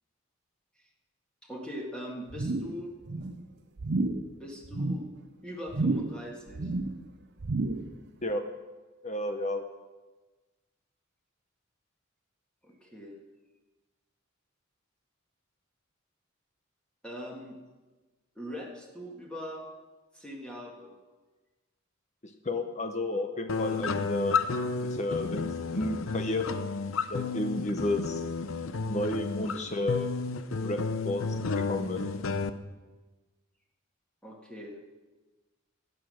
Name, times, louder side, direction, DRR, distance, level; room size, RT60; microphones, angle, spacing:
voice 1, 1.4-2.9 4.4-5.1 5.4-6.7 12.6-13.1 17.0-17.6 18.4-19.7 20.1-20.9 34.2-34.7, equal, 5° left, -2 dB, 1.9 m, -41 dB
sound 1, 2.3-2.8 3.1-3.4 3.8-4.3 4.6-5.1 5.7-6.2 6.5-7.0 7.4-7.9 8.3-8.4, right 2 dB, 55° right, 0.7 m, -31 dB
voice 2, 9.0-9.6 22.4-24.4 25.0-26.7 27.1-28.2 28.9-30.1 30.6-31.2 31.6-32.0, left 1 dB, 35° left, 6 dB, 0.9 m, -31 dB
sound 2, 23.5-32.5, left 4 dB, 80° left, 0.7 m, -32 dB
16.5 x 9.3 x 6.4 m, 1.3 s
head